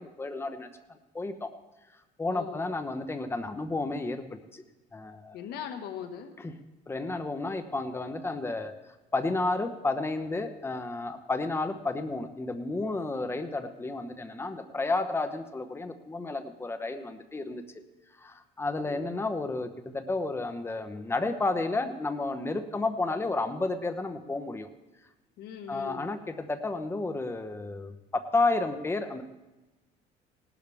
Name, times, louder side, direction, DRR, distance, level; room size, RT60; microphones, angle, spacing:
voice 1, 0.0-1.5 2.2-4.6 4.9-5.4 6.4-6.5 6.9-17.6 18.2-24.7 25.7-29.2, left 3 dB, 15° left, 8 dB, 1.0 m, -32 dB
voice 2, 2.3-2.6 5.3-6.3 18.8-19.2 25.4-26.1, left 8 dB, 70° left, 6 dB, 1.6 m, -40 dB
18.5 x 12.0 x 3.5 m, 1.1 s
cardioid pair, 125°, 17 cm